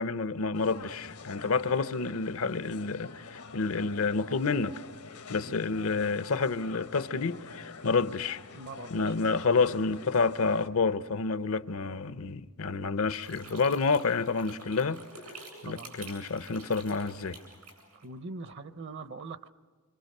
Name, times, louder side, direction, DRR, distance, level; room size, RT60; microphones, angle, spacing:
voice 1, 0.0-4.8 5.3-8.4 8.9-15.0 15.6-17.4, left 4 dB, 65° left, 0.7 m, -29 dB
sound 1, 0.5-10.7, left 4 dB, 85° left, 1.4 m, -46 dB
voice 2, 5.3-5.7 6.3-6.5 8.5-9.3 15.6-16.0 18.0-19.5, right 3 dB, 55° right, 0.8 m, -43 dB
sound 2, 13.1-18.0, right 3 dB, 90° right, 7.9 m, -48 dB
26.5 x 25.5 x 6.7 m
head